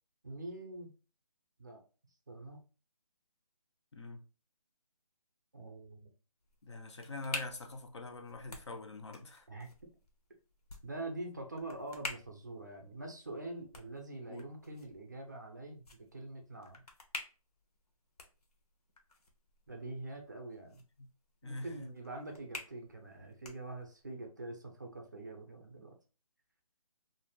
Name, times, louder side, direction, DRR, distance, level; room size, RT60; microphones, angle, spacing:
voice 1, 0.2-0.9 1.6-1.8 2.3-2.6 5.5-6.1 9.5-9.9 10.8-15.8 16.1-16.8 19.7-20.8 21.4-26.0, right 2 dB, 30° right, 0.4 m, -45 dB
sound 1, 6.4-24.1, left 3 dB, 85° left, 0.8 m, -50 dB
voice 2, 6.6-9.5 14.3-14.4 21.4-21.7, left 2 dB, 50° left, 0.4 m, -44 dB
2.5 x 2.3 x 3.0 m
hypercardioid pair, 170°, 19 cm